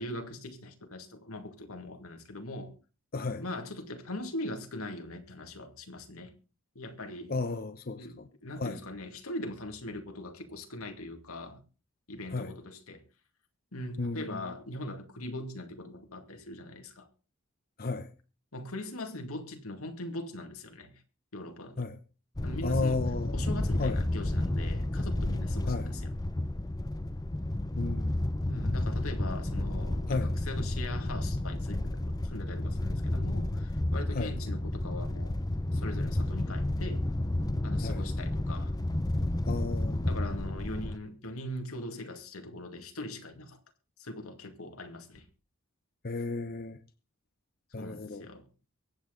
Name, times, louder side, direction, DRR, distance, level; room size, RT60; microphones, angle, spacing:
voice 1, 0.0-2.7 3.4-6.3 6.8-7.3 8.0-11.6 12.1-13.0 13.7-17.1 18.5-20.9 21.3-21.9 22.4-23.0 23.3-26.1 28.5-35.4 35.7-37.1 37.6-38.7 40.0-43.6 44.0-45.3 47.8-48.5, left 1 dB, 85° left, 2.3 m, -41 dB
voice 2, 3.1-3.4 7.3-8.3 8.6-8.8 12.3-12.5 14.0-14.4 17.8-18.1 21.8-22.0 22.6-23.5 23.8-24.0 25.7-25.9 27.8-28.2 30.1-30.3 34.1-34.3 37.8-38.0 39.5-40.1 46.0-46.8 47.7-48.2, left 3 dB, 45° left, 0.9 m, -33 dB
sound 1, 22.4-41.0, left 1 dB, 20° left, 0.6 m, -31 dB
23.0 x 8.7 x 3.9 m
head